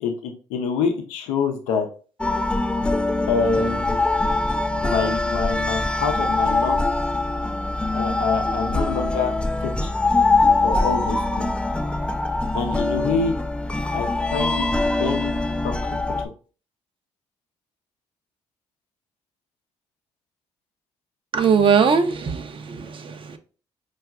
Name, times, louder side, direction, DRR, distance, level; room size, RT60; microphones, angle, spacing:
voice 1, 0.0-1.9 3.3-4.0 4.8-6.9 7.9-9.3 9.6-9.9 10.6-11.5 12.5-13.3 13.9-14.7 15.0-15.4 15.6-15.8, left 5 dB, 90° left, 0.5 m, -26 dB
sound 1, 2.2-16.3, left 2 dB, 10° left, 0.3 m, -23 dB
voice 2, 21.3-23.4, right 6 dB, 45° right, 0.5 m, -20 dB
4.5 x 2.3 x 2.3 m
supercardioid pair, 65°, 12 cm